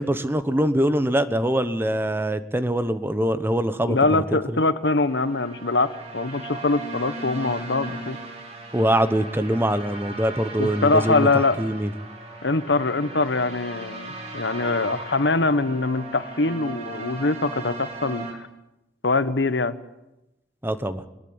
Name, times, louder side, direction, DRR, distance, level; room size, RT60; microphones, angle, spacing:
voice 1, 0.0-4.4 8.7-11.3 11.6-11.9 20.6-21.0, right 1 dB, 15° right, 11 dB, 1.1 m, -23 dB
voice 2, 3.9-8.2 10.6-11.6 12.4-18.5 19.0-19.7, left 3 dB, 85° left, 12 dB, 1.3 m, -23 dB
sound 1, 4.8-18.3, right 2 dB, 40° right, 4.7 m, -37 dB
21.5 x 20.5 x 8.8 m, 0.94 s
head